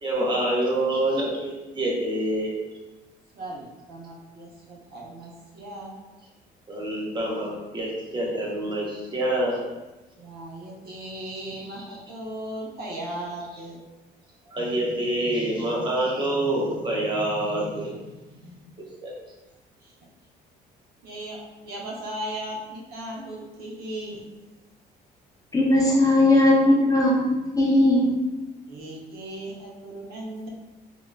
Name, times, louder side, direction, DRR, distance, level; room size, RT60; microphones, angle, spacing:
voice 1, 0.0-2.5 6.7-9.6 14.5-18.0 19.0-19.1, right 1 dB, 25° right, -3 dB, 0.9 m, -26 dB
voice 2, 3.3-5.9 10.2-13.8 19.8-19.9 21.0-24.2 28.7-30.5, right 1 dB, 65° right, -2 dB, 0.8 m, -37 dB
voice 3, 25.5-27.3 27.6-28.1, left 1 dB, 20° left, -3 dB, 0.6 m, -18 dB
3.7 x 2.3 x 2.2 m, 1.1 s
cardioid pair, 110°, 17 cm